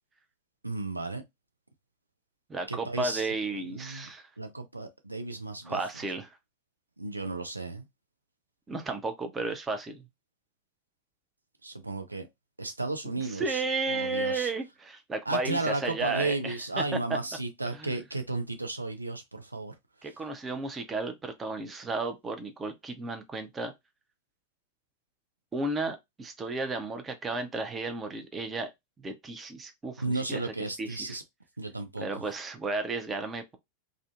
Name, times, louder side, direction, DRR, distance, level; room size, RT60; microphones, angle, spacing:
voice 1, 0.6-1.2 2.7-3.3 3.5-4.1 4.4-5.8 7.0-7.9 11.6-12.3 12.6-13.6 13.9-14.5 15.3-19.7 30.0-31.2 31.6-32.2, right 2 dB, 85° right, 0.3 m, -34 dB
voice 2, 2.5-4.3 5.7-6.4 8.7-10.0 13.0-17.2 17.7-17.9 20.0-23.7 25.5-28.7 29.0-30.5 30.8-31.2 32.0-33.6, right 3 dB, 15° right, 0.5 m, -33 dB
2.5 x 2.0 x 2.4 m
figure-of-eight pair, 90°, 0 cm